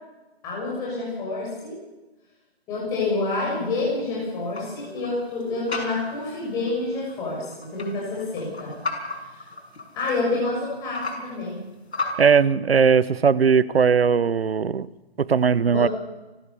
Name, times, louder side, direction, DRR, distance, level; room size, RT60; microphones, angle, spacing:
voice 1, 0.4-1.8 2.7-8.7 9.9-11.6 15.6-15.9, left 3 dB, 10° left, -4 dB, 6.3 m, -28 dB
sound 1, 3.3-12.2, left 3 dB, 85° left, 6.5 m, -36 dB
voice 2, 12.2-14.9 15.2-15.9, right 6 dB, 65° right, 19 dB, 1.0 m, -19 dB
29.5 x 13.5 x 7.0 m, 1.1 s
hypercardioid pair, 170°, 32 cm